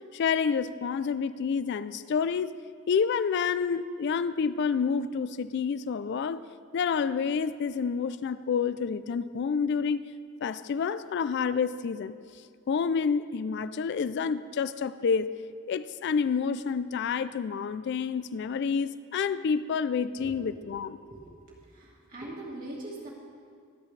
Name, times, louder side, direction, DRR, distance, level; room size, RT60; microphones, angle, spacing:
voice 1, 0.1-2.5 2.9-6.4 6.7-10.1 10.4-12.2 12.7-15.3 15.7-21.0, left 6 dB, 55° left, 14 dB, 0.3 m, -28 dB
voice 2, 21.7-23.1, right 1 dB, 40° right, -4 dB, 2.6 m, -41 dB
23.5 x 8.2 x 3.3 m, 2.3 s
head